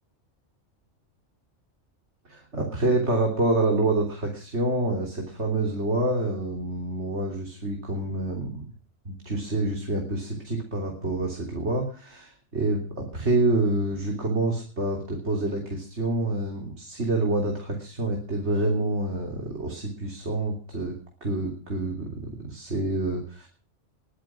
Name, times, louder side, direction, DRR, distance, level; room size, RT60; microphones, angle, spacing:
voice 1, 2.3-8.7 9.1-20.9 21.2-23.5, right 2 dB, 65° right, 2 dB, 3.5 m, -27 dB
21.5 x 10.5 x 6.2 m, 0.41 s
omnidirectional pair, 1.3 m